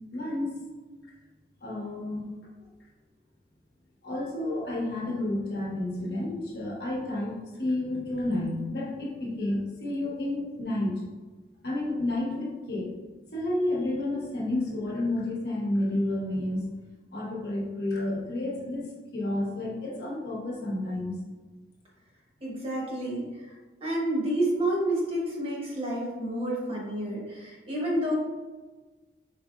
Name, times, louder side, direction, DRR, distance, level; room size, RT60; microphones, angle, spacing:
voice 1, 0.1-0.5 1.6-2.3 4.0-10.9 11.6-12.9 13.3-16.6 17.1-21.2, left 1 dB, 60° left, -4 dB, 1.3 m, -30 dB
voice 2, 22.4-23.5 23.8-28.2, right 1 dB, 35° right, -4 dB, 1.2 m, -29 dB
4.8 x 4.1 x 2.5 m, 1.3 s
head